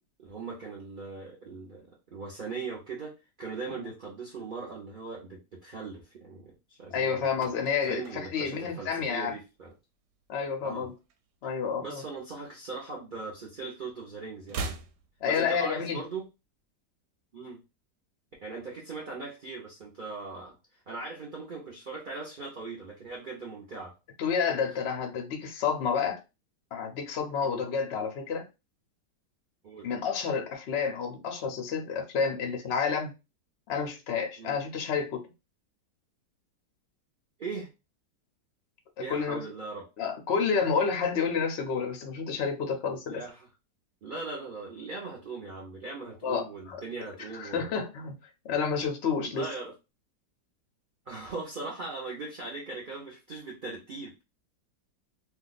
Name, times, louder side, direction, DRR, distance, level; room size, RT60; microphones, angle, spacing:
voice 1, 0.2-3.1 3.4-7.4 7.9-9.7 10.6-10.9 11.8-14.7 15.2-16.2 17.3-17.6 18.4-20.5 20.9-23.9 27.4-27.6 29.6-29.9 34.4-34.6 37.4-37.7 39.0-39.9 43.1-43.5 44.0-47.8 49.3-49.7 51.1-54.2, right 3 dB, 55° right, 0.5 m, -39 dB
voice 2, 6.9-9.3 10.3-10.9 11.4-12.0 15.2-16.0 24.2-26.2 26.7-28.5 29.8-33.1 33.7-35.2 39.1-39.4 40.0-43.2 46.2-46.8 47.2-48.2 48.4-49.5, left 6 dB, 65° left, 0.6 m, -30 dB
sound 1, 7.0-9.7 9.9-10.2 10.5-12.0 12.3-13.6 13.9-16.0 16.2-16.3, right 3 dB, 75° right, 1.1 m, -43 dB
2.7 x 2.3 x 3.9 m
omnidirectional pair, 1.9 m